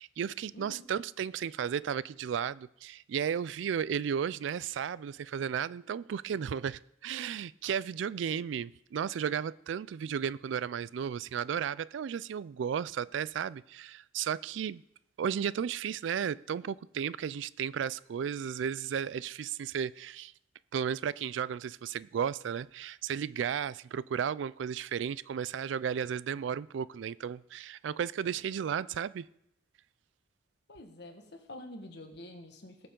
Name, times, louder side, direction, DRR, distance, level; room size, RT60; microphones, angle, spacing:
voice 1, 0.0-14.8 15.2-20.3 20.7-29.3, right 8 dB, 70° right, 0.3 m, -34 dB
voice 2, 0.5-0.9 30.7-32.9, left 1 dB, 60° left, 1.6 m, -47 dB
19.0 x 6.8 x 3.8 m
head